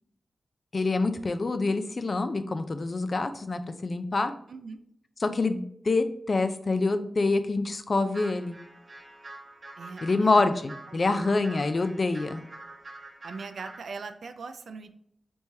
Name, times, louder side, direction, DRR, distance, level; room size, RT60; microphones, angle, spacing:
voice 1, 0.7-4.3 5.2-8.6 10.0-12.4, left 3 dB, 45° left, 9 dB, 0.4 m, -26 dB
sound 1, 8.1-13.9, right 2 dB, 45° right, 0.6 m, -46 dB
voice 2, 9.8-10.4 10.9-11.4 13.2-14.9, right 4 dB, 85° right, 8 dB, 0.3 m, -40 dB
3.5 x 3.0 x 2.7 m, 0.66 s
wide cardioid pair, 90°, 0 cm